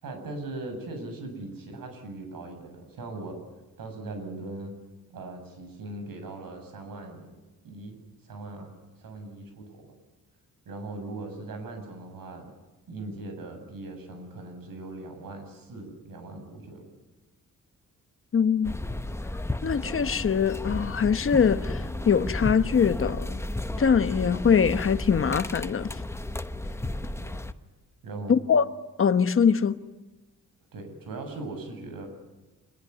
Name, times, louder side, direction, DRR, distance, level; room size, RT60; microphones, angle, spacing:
voice 1, 0.0-3.4 3.8-4.7 5.1-7.3 7.6-8.0 8.2-8.7 9.0-9.9 10.7-12.5 12.9-16.9 27.1-27.3 28.0-28.3 30.7-32.1, right 2 dB, 80° right, 7.7 m, -39 dB
voice 2, 18.3-18.7 19.6-23.4 23.8-25.9 28.3-28.7 29.0-29.8, left 6 dB, 40° left, 1.2 m, -23 dB
sound 1, 18.6-27.5, left 1 dB, 10° left, 1.0 m, -33 dB
26.5 x 22.0 x 9.7 m
wide cardioid pair, 145°, 34 cm